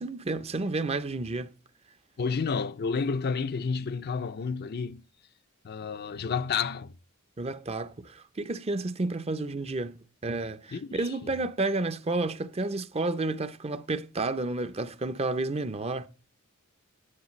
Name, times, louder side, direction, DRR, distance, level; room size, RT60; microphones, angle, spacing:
voice 1, 0.0-1.5 7.4-10.0 10.2-16.1, right 2 dB, 30° right, 0.6 m, -31 dB
voice 2, 2.2-5.0 5.6-6.9 10.7-11.3, left 5 dB, 50° left, 0.4 m, -30 dB
10.0 x 9.7 x 3.1 m
head